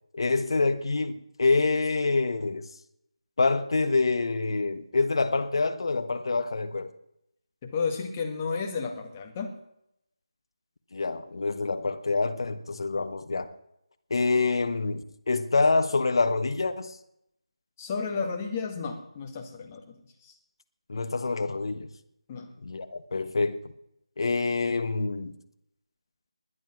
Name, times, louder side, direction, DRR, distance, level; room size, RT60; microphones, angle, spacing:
voice 1, 0.1-2.7 3.4-6.9 10.9-13.5 14.1-17.0 20.9-21.9 22.6-23.7 24.2-25.3, left 3 dB, 55° left, 1.3 m, -26 dB
voice 2, 7.6-9.5 17.8-20.3 22.3-22.5, left 5 dB, 20° left, 1.8 m, -32 dB
21.0 x 8.7 x 6.2 m
figure-of-eight pair, 160°, 3 cm